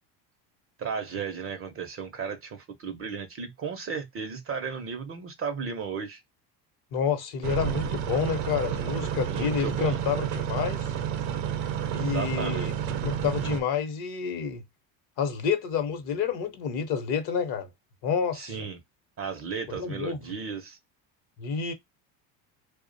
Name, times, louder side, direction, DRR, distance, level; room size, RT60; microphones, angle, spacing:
voice 1, 0.8-6.2 9.2-10.0 11.9-12.9 18.3-18.8 19.2-20.8, right 6 dB, 30° right, 0.4 m, -35 dB
voice 2, 6.9-10.9 11.9-12.7 13.0-14.6 15.2-17.7 18.0-18.7 19.8-20.2 21.4-21.7, left 6 dB, 50° left, 0.8 m, -29 dB
sound 1, 7.4-13.6, right 9 dB, 70° right, 0.6 m, -30 dB
2.4 x 2.1 x 2.5 m
hypercardioid pair, 80°, 49 cm